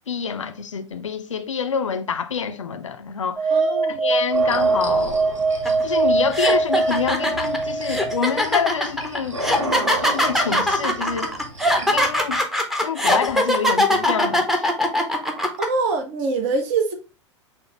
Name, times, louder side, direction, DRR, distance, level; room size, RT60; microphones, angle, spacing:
voice 1, 0.1-3.5 4.0-5.2 5.8-11.3 11.9-12.4 12.8-14.7, left 7 dB, 80° left, 0.4 m, -27 dB
sound 1, 3.4-8.4, right 3 dB, 30° right, 1.7 m, -22 dB
voice 2, 3.5-4.0 15.6-16.9, right 4 dB, 45° right, 0.7 m, -24 dB
sound 2, 4.3-12.4, right 1 dB, 90° right, 0.6 m, -33 dB
sound 3, 5.7-5.8 6.3-15.7, left 1 dB, ahead, 0.6 m, -21 dB
5.6 x 2.0 x 3.1 m
figure-of-eight pair, 90°, 16 cm